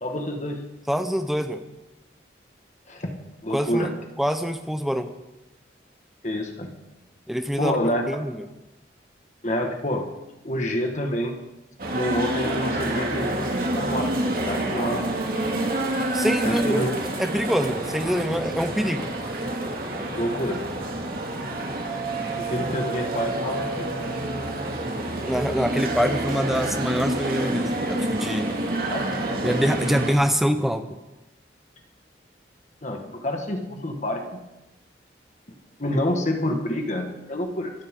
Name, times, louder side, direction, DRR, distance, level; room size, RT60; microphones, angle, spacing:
voice 1, 0.0-0.7 2.9-3.1 3.4-3.9 6.2-6.7 7.6-8.0 9.4-10.1 10.4-11.4 11.9-13.4 13.7-15.0 16.4-16.9 20.2-20.6 22.4-23.9 28.9-29.1 32.8-34.4 35.8-37.7, left 1 dB, 40° left, 3 dB, 1.8 m, -28 dB
voice 2, 0.9-1.6 3.5-3.9 4.2-5.1 7.3-7.8 8.1-8.4 16.1-19.1 25.2-28.5 29.4-31.0, equal, ahead, 7 dB, 0.9 m, -25 dB
sound 1, 11.8-30.1, right 1 dB, 55° right, 2.5 m, -28 dB
24.0 x 13.0 x 3.9 m, 0.97 s
head